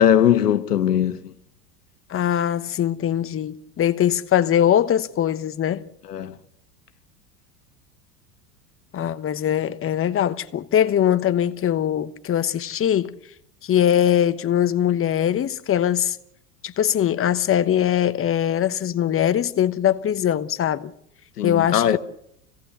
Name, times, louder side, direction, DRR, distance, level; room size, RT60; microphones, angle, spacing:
voice 1, 0.0-1.3 6.1-6.3 21.4-22.0, left 10 dB, 90° left, 1.4 m, -19 dB
voice 2, 2.1-5.8 8.9-13.1 13.6-16.2 16.6-20.9 21.4-22.0, left 10 dB, 30° left, 1.1 m, -21 dB
26.0 x 17.5 x 7.0 m
hypercardioid pair, 95°, 46 cm